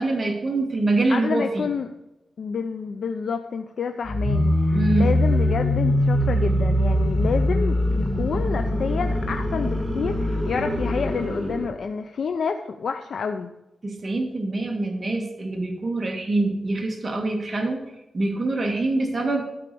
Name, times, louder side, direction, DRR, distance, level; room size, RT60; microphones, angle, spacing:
voice 1, 0.0-1.7 4.7-5.1 13.8-17.8 18.1-19.4, right 2 dB, 30° right, 2 dB, 2.0 m, -24 dB
voice 2, 1.1-1.9 2.4-13.5, left 5 dB, 65° left, 7 dB, 0.6 m, -29 dB
sound 1, 4.0-11.7, left 1 dB, ahead, 3.9 m, -22 dB
12.5 x 4.9 x 6.9 m, 0.97 s
wide cardioid pair, 110°, 0 cm